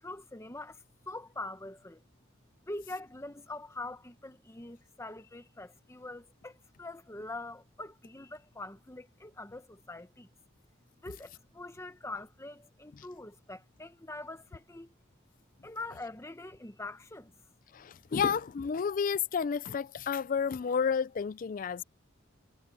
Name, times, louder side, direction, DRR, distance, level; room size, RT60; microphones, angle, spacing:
voice 1, 0.0-2.0 2.7-10.3 11.0-14.9 15.6-17.3, left 2 dB, 15° left, 0.9 m, -44 dB
voice 2, 17.7-21.8, left 6 dB, 40° left, 0.3 m, -31 dB
head